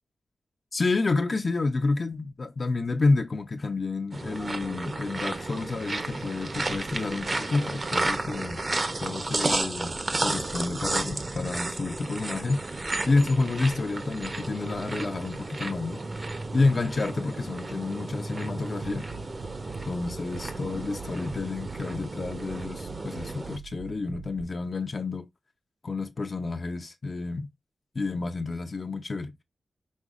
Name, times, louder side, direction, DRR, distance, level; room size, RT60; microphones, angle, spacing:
voice 1, 0.7-8.7 9.0-9.9 10.2-16.0 16.5-19.1 19.9-25.3 25.8-27.5 27.9-29.3, left 3 dB, 45° left, 0.5 m, -29 dB
sound 1, 4.1-23.6, right 2 dB, 40° right, 0.7 m, -33 dB
Bass drum, 18.8-24.4, right 7 dB, 85° right, 0.5 m, -44 dB
5.3 x 3.5 x 2.4 m
wide cardioid pair, 85°, 0 cm